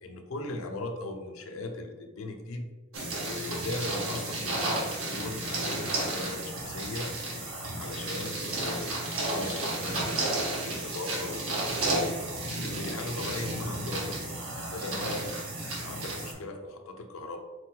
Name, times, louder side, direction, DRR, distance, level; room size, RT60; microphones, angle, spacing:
voice 1, 0.0-2.7 3.3-7.1 7.8-11.7 12.6-14.2 14.7-17.4, left 2 dB, 85° left, 4 dB, 0.6 m, -38 dB
sound 1, 2.9-16.3, right 2 dB, 90° right, 1.1 m, -32 dB
4.6 x 2.2 x 4.4 m, 1.3 s
head